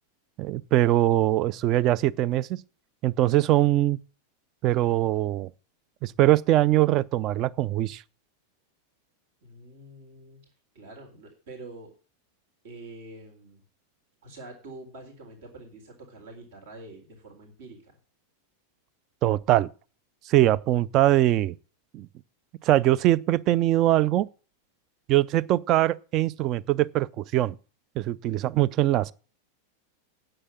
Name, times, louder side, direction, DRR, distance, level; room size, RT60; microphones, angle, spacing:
voice 1, 0.4-2.6 3.0-4.0 4.6-5.5 6.0-8.0 19.2-19.7 20.3-21.6 21.9-22.1 22.6-24.3 25.1-27.6 28.0-29.1, right 14 dB, 35° right, 0.5 m, -22 dB
voice 2, 9.4-10.4 10.7-12.0 12.6-13.6 14.2-17.9, right 2 dB, 55° right, 4.0 m, -46 dB
9.9 x 8.0 x 7.4 m
figure-of-eight pair, 90°, 0 cm